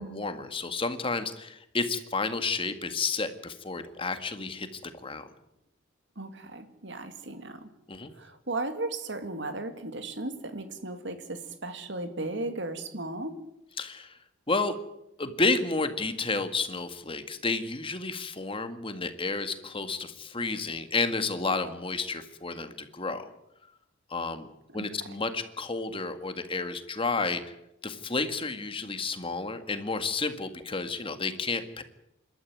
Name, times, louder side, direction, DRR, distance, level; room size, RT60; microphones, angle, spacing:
voice 1, 0.0-5.3 7.9-8.1 13.8-14.2 14.5-14.8 15.2-23.3 24.1-24.5 24.7-27.5 27.8-31.8, left 3 dB, 25° left, 9 dB, 1.8 m, -31 dB
voice 2, 6.2-7.7 8.1-13.4 24.7-24.8, right 2 dB, 65° right, 8 dB, 2.6 m, -36 dB
27.0 x 13.0 x 9.6 m, 0.84 s
head